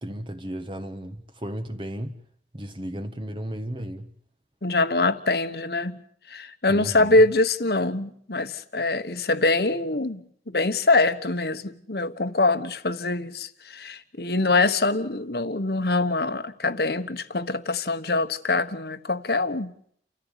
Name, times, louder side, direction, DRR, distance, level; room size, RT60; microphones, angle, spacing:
voice 1, 0.0-2.2 2.5-4.1 6.7-7.2, equal, 30° right, 1.3 m, -34 dB
voice 2, 4.6-6.0 6.3-19.7, left 2 dB, 60° left, 1.3 m, -24 dB
29.5 x 14.5 x 8.2 m
head